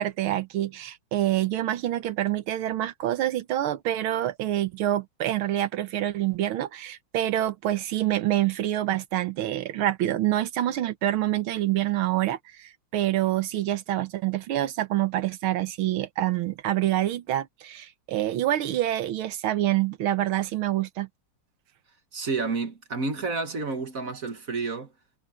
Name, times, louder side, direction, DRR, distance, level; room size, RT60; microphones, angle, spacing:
voice 1, 0.0-21.1, right 13 dB, 75° right, 1.7 m, -26 dB
voice 2, 22.1-24.9, right 4 dB, 40° right, 1.8 m, -30 dB
omnidirectional pair, 2.4 m